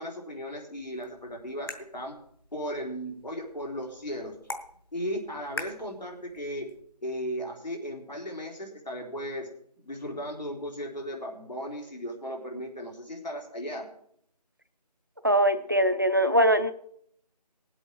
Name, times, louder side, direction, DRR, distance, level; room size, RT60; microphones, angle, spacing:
voice 1, 0.0-2.2 2.5-4.3 4.9-6.7 7.0-9.5 9.9-13.9, equal, 85° left, 0 dB, 3.8 m, -36 dB
sound 1, 0.8-6.8, left 2 dB, 35° left, 1.1 m, -45 dB
voice 2, 15.2-16.7, equal, 30° right, 10 dB, 0.5 m, -22 dB
19.0 x 8.1 x 4.6 m, 0.67 s
figure-of-eight pair, 165°, 21 cm